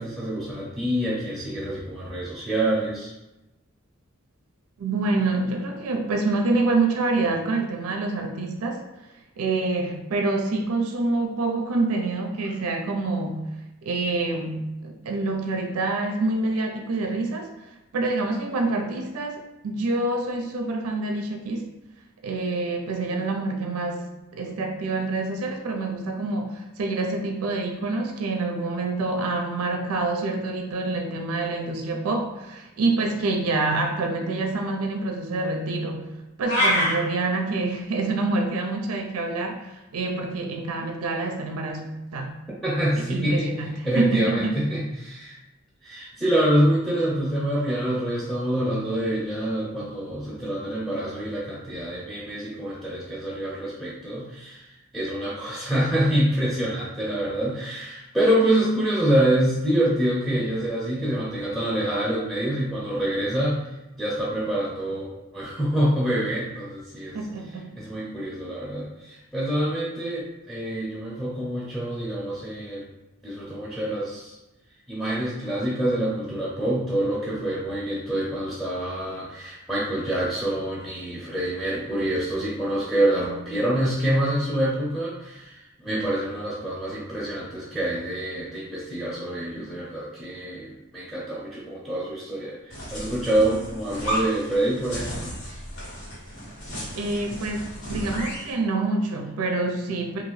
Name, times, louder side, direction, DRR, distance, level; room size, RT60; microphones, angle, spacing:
voice 1, 0.0-3.1 42.6-43.5 43.8-45.4 45.8-54.7 54.9-63.6 64.0-67.2 67.8-72.9 73.2-74.4 74.9-95.3, right 1 dB, ahead, -8 dB, 0.7 m, -26 dB
voice 2, 4.8-8.9 9.4-13.6 13.8-21.7 22.2-24.1 24.3-42.3 43.1-44.6 67.1-67.8 96.9-100.2, right 3 dB, 80° right, 3 dB, 0.4 m, -27 dB
sound 1, 36.4-36.9, left 1 dB, 50° left, 1.0 m, -21 dB
sound 2, 92.7-98.5, equal, 85° left, 1.3 m, -34 dB
2.8 x 2.5 x 3.1 m, 0.99 s
head